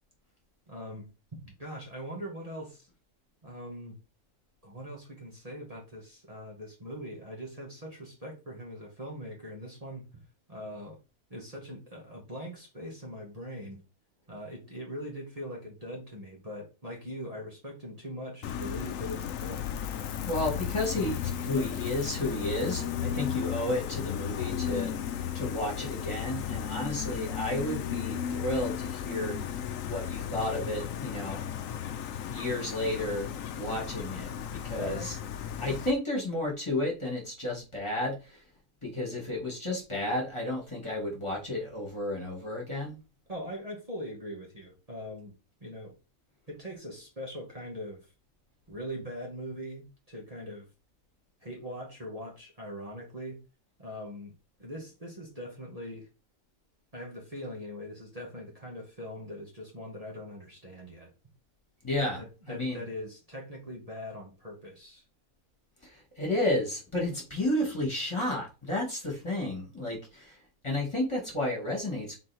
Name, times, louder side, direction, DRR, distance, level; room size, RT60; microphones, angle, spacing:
voice 1, 0.7-1.1 1.3-2.9 3.4-4.0 4.6-10.2 10.5-11.0 11.3-13.8 14.3-19.7 34.8-35.1 43.3-45.3 45.6-45.9 46.5-48.1 48.7-50.7 51.4-53.4 53.8-54.3 54.6-56.1 56.9-61.1 62.2-65.0, equal, 25° right, -3 dB, 2.1 m, -41 dB
Gull seagull, 18.4-35.9, left 9 dB, 75° left, 1.1 m, -35 dB
voice 2, 20.3-29.4 29.9-31.4 32.1-34.3 34.6-35.2 35.6-38.4 38.8-42.9 61.8-62.2 62.5-62.8 65.8-70.4 70.6-72.2, left 1 dB, 20° left, -2 dB, 2.6 m, -32 dB
6.2 x 4.4 x 4.5 m, 0.30 s
omnidirectional pair, 1.4 m